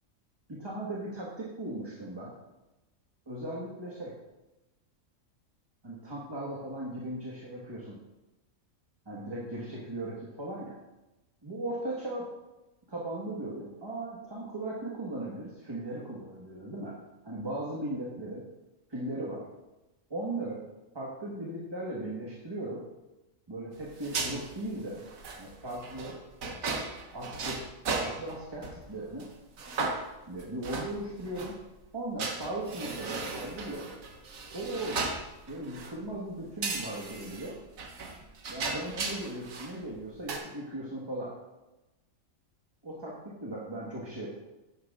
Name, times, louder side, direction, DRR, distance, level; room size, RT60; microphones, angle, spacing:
voice 1, 0.5-2.3 3.3-4.1 5.8-8.0 9.0-10.7 11.4-12.3 12.9-16.9 17.2-18.4 18.9-19.4 20.1-20.6 20.9-22.8 23.5-25.0 25.4-26.2 27.1-27.6 28.0-29.3 30.2-31.6 31.9-33.9 34.5-35.2 35.5-37.5 38.5-41.3 42.8-44.3, right 1 dB, 20° right, -5 dB, 1.4 m, -37 dB
sound 1, 23.8-28.8 29.2-29.3 29.6-31.5 32.2-36.0 36.6-39.8 40.0-40.4, right 3 dB, 90° right, 1.5 m, -36 dB
10.5 x 9.5 x 2.5 m, 1.0 s
omnidirectional pair, 1.4 m